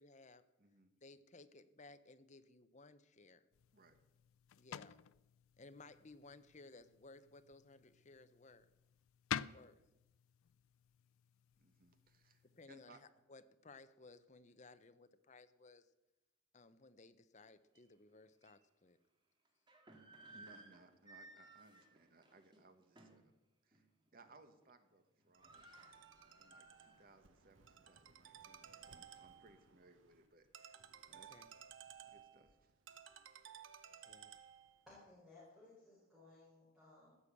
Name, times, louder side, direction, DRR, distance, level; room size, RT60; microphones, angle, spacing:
voice 1, 0.0-0.4 1.0-3.4 4.6-5.0 5.6-8.7 9.5-9.8 12.5-13.0 13.3-15.9 16.5-19.0 20.3-20.4 31.3-31.5 34.1-34.3, left 3 dB, 35° left, 11 dB, 0.7 m, -60 dB
voice 2, 0.6-0.9 3.7-4.0 11.6-13.0 20.3-23.3 23.6-23.9 24.1-25.8 26.3-30.8 31.1-31.5 32.1-32.7, right 2 dB, 45° right, 8 dB, 1.4 m, -66 dB
sound 1, 3.5-12.7, left 9 dB, 85° left, 0.4 m, -50 dB
sound 2, 17.7-17.8 18.4-18.5 19.4-23.3 23.7-23.9 24.2-24.6 24.9-25.0 25.2-27.2 27.6-27.7 28.3-29.6, right 2 dB, 20° right, 1.9 m, -61 dB
Ringtone, 25.3-34.9, right 8 dB, 65° right, 0.9 m, -58 dB
voice 3, 34.9-37.2, left 2 dB, ahead, -8 dB, 4.4 m, -61 dB
15.0 x 6.2 x 8.5 m, 0.96 s
head